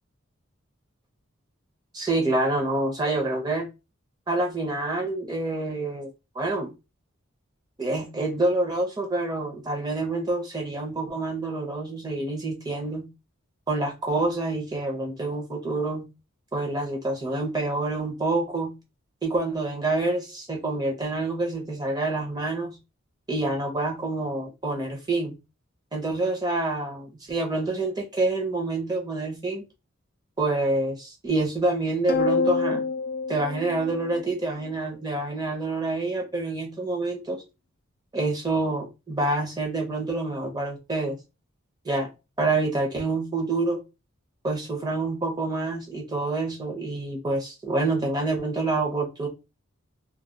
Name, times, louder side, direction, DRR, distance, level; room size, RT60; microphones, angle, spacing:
voice 1, 1.9-3.7 4.3-6.7 7.8-13.0 13.7-16.0 16.5-18.7 19.2-22.7 23.3-25.4 25.9-29.6 30.4-32.8 33.3-37.4 38.1-41.2 41.8-42.1 42.4-43.8 44.4-49.3, right 2 dB, 20° right, 0.7 m, -27 dB
sound 1, 32.1-34.7, left 5 dB, 45° left, 0.3 m, -27 dB
2.3 x 2.3 x 3.7 m
head